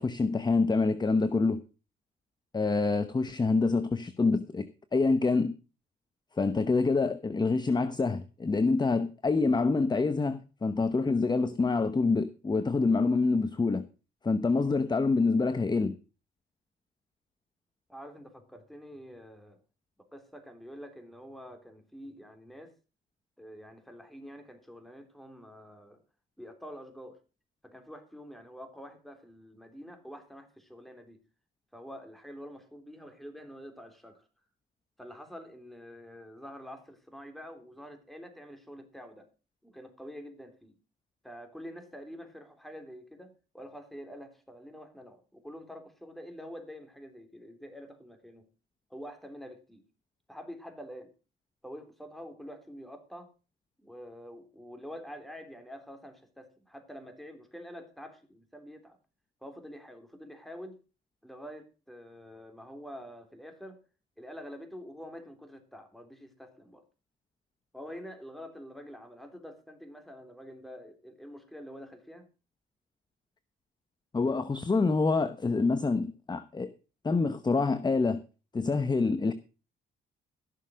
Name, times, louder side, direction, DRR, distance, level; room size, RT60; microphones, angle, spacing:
voice 1, 0.0-1.6 2.5-5.5 6.4-13.9 14.2-15.9 74.1-76.7 77.0-78.2 78.5-79.3, left 3 dB, 20° left, 0.9 m, -26 dB
voice 2, 17.9-19.6 20.0-22.7 23.4-26.0 26.4-27.2 27.6-31.2 31.7-34.3 35.0-39.3 39.6-40.8 41.2-48.5 48.9-49.8 50.3-51.1 51.6-53.3 53.8-59.0 59.4-60.8 61.2-63.8 64.2-66.8 67.7-72.3, equal, ahead, 3.5 m, -47 dB
15.0 x 6.6 x 6.3 m
cardioid pair, 90°, 20 cm